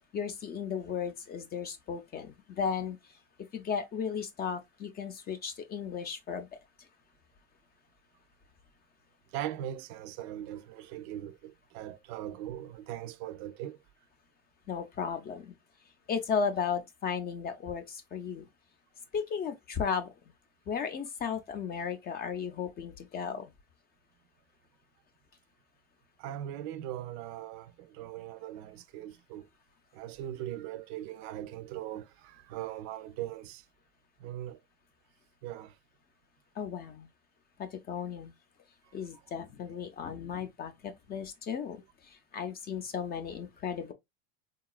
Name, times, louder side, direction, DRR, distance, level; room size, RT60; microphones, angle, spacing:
voice 1, 0.1-3.0 3.5-6.5 14.7-15.6 16.1-18.5 19.1-20.1 20.7-23.5 36.6-37.1 37.6-38.3 38.9-43.9, left 6 dB, 25° left, 0.5 m, -35 dB
voice 2, 9.3-13.8 26.2-29.5 29.9-33.6 34.2-34.6 35.4-35.7, right 12 dB, 65° right, 0.5 m, -40 dB
3.9 x 2.3 x 2.3 m
supercardioid pair, 135°, 36 cm